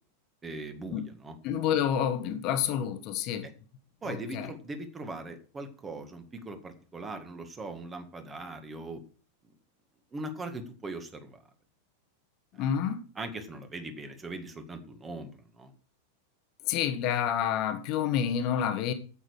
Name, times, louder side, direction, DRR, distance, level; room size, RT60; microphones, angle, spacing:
voice 1, 0.4-1.4 3.4-3.5 4.0-9.0 10.1-11.4 12.5-12.7 13.2-15.7, right 2 dB, 15° right, 1.8 m, -40 dB
voice 2, 1.4-3.5 4.1-4.5 12.6-13.1 16.7-18.9, left 9 dB, 40° left, 1.4 m, -29 dB
9.0 x 8.2 x 6.4 m
figure-of-eight pair, 90°, 0 cm